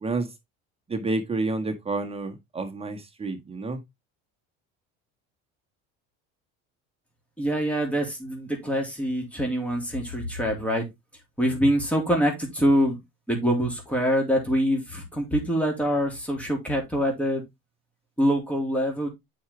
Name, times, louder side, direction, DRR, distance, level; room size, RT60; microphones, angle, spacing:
voice 1, 0.9-3.8, right 3 dB, 20° right, 1.6 m, -29 dB
voice 2, 7.4-10.9 11.4-13.0 13.3-17.4 18.2-19.1, equal, 5° left, 3.3 m, -25 dB
8.5 x 5.1 x 3.4 m
supercardioid pair, 100°, 29 cm